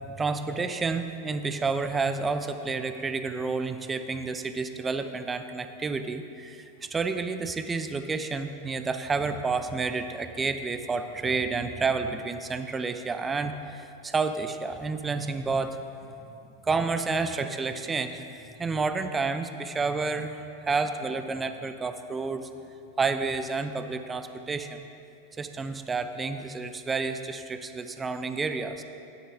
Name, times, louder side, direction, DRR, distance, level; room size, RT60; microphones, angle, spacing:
voice 1, 0.0-18.3 18.6-20.4 20.6-22.5 23.0-24.9 25.4-28.8, right 4 dB, 15° right, 9 dB, 0.5 m, -30 dB
13.0 x 9.4 x 3.6 m, 2.7 s
figure-of-eight pair, 90°, 0 cm